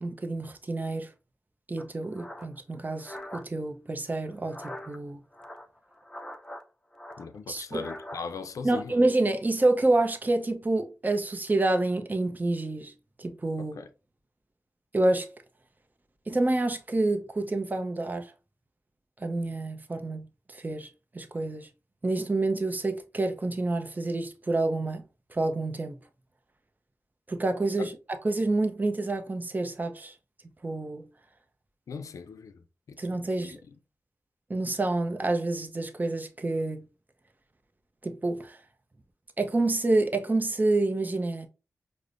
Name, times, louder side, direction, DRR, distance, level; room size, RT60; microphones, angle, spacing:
voice 1, 0.0-1.1 1.7-5.2 7.5-7.8 8.6-12.9 13.2-13.8 14.9-15.3 16.3-18.3 19.2-20.9 21.1-21.7 22.0-25.0 25.3-26.0 27.3-27.9 28.2-30.1 30.6-31.0 33.0-33.6 34.5-36.8 38.0-38.6 39.4-41.5, right 2 dB, 30° right, 0.6 m, -28 dB
sound 1, 1.8-3.4 4.3-5.0 5.3-6.6 6.9-8.2, left 1 dB, 10° left, 0.6 m, -42 dB
voice 2, 7.2-9.0 13.6-13.9 27.8-27.9 31.9-33.0 33.3-33.6, left 5 dB, 80° left, 0.4 m, -39 dB
4.8 x 2.1 x 2.5 m
cardioid pair, 45°, 6 cm